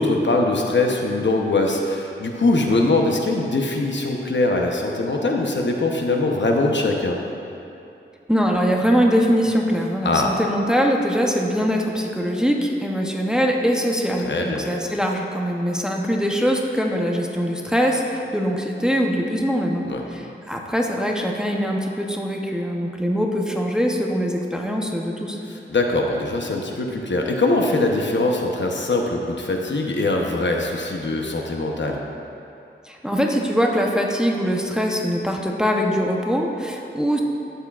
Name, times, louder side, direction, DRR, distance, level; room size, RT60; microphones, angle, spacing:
voice 1, 0.0-7.2 10.0-10.3 14.2-14.6 19.9-20.0 25.5-32.0, left 2 dB, 60° left, 1 dB, 0.9 m, -22 dB
voice 2, 8.3-25.4 32.9-37.2, equal, 5° right, 0 dB, 0.7 m, -22 dB
12.5 x 8.3 x 2.4 m, 2.8 s
wide cardioid pair, 90°, 21 cm